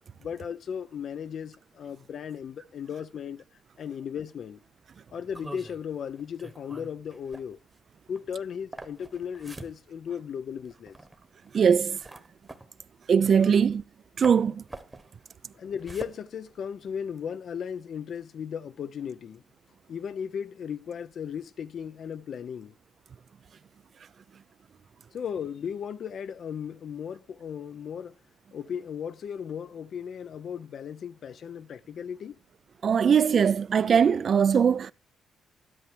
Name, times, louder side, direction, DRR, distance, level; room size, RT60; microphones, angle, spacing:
voice 1, 0.2-3.4 3.8-4.6 5.1-7.6 8.1-11.0 13.4-13.6 15.5-19.4 19.9-22.7 25.1-28.1 28.5-32.4, left 7 dB, 60° left, 0.6 m, -36 dB
sound 1, 5.3-14.0 14.2-17.1, right 2 dB, 15° right, 1.2 m, -46 dB
voice 2, 11.5-12.0 13.1-13.8 14.2-14.6 32.8-34.9, right 7 dB, 50° right, 0.5 m, -21 dB
12.5 x 11.0 x 3.3 m
cardioid pair, 90°, 0 cm